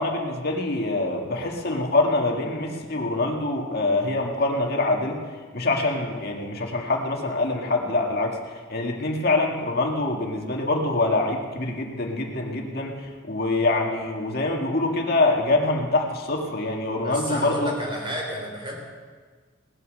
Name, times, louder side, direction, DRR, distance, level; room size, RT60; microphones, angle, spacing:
voice 1, 0.0-5.2 5.5-17.7, left 2 dB, 50° left, 1 dB, 2.0 m, -25 dB
voice 2, 17.0-18.8, equal, 25° right, 0 dB, 3.3 m, -31 dB
19.0 x 9.6 x 6.6 m, 1.5 s
head